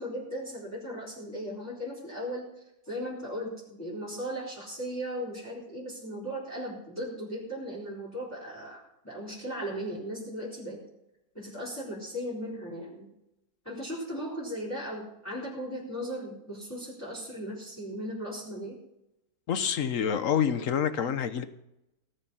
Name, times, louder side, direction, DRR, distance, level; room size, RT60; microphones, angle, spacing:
voice 1, 0.0-2.5 2.9-10.8 11.3-13.1 13.6-18.8, equal, 10° left, -7 dB, 4.1 m, -37 dB
voice 2, 19.5-21.4, left 8 dB, 55° left, 12 dB, 1.3 m, -27 dB
18.0 x 8.9 x 5.6 m, 0.87 s
omnidirectional pair, 1.7 m